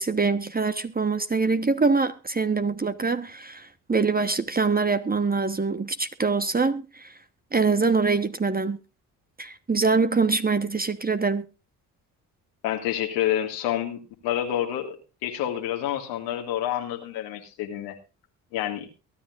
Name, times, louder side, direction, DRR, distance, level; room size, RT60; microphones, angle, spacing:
voice 1, 0.0-7.1 7.5-8.8 9.4-11.5, right 4 dB, 20° right, 1.2 m, -24 dB
voice 2, 12.6-15.0 15.2-18.0 18.5-18.9, left 11 dB, 90° left, 2.2 m, -28 dB
23.0 x 10.5 x 2.5 m
supercardioid pair, 60°, 40 cm